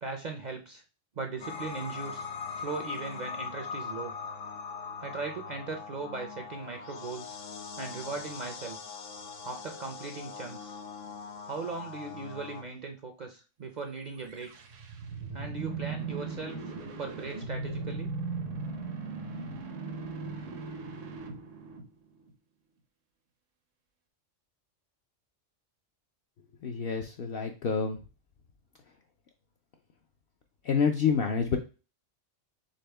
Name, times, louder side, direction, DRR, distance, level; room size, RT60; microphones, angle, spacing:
voice 1, 0.0-0.8 1.2-2.3 2.6-4.1 5.0-7.4 7.8-8.8 9.4-10.8 11.4-14.5 15.3-16.6 17.0-18.1, right 4 dB, 50° right, 4 dB, 0.5 m, -38 dB
sound 1, 1.4-12.6, left 5 dB, 80° left, 1.1 m, -41 dB
sound 2, 14.2-22.3, right 4 dB, 80° right, 1.1 m, -38 dB
voice 2, 26.6-28.0 30.7-31.6, left 6 dB, 60° left, 3 dB, 0.6 m, -27 dB
4.1 x 3.5 x 3.3 m, 0.33 s
omnidirectional pair, 1.3 m